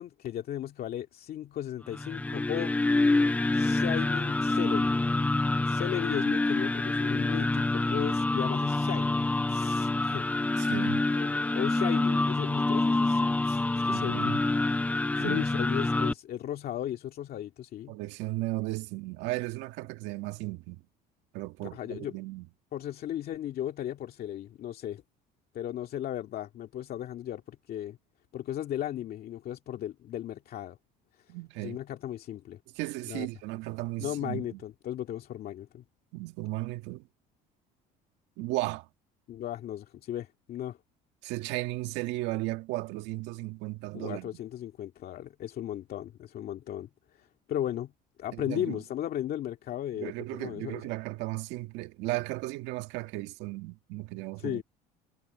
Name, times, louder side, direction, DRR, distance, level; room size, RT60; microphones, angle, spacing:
voice 1, 0.0-2.8 3.5-4.9 5.7-10.3 11.1-14.4 15.2-18.0 21.7-22.2 22.7-25.0 25.5-28.0 28.3-30.8 31.6-32.6 33.1-33.3 34.0-35.8 39.3-40.8 43.9-47.9 48.2-50.9 54.4-54.6, left 11 dB, 55° left, 2.2 m, -36 dB
sound 1, 1.9-16.1, left 2 dB, 10° left, 0.4 m, -27 dB
voice 2, 10.6-11.1 13.9-14.4 15.2-15.4 17.9-20.8 21.3-22.5 31.3-31.8 32.8-34.6 36.1-37.0 38.4-38.9 41.2-44.3 48.3-48.8 49.9-54.6, right 19 dB, 75° right, 1.7 m, -35 dB
supercardioid pair, 90°, 19 cm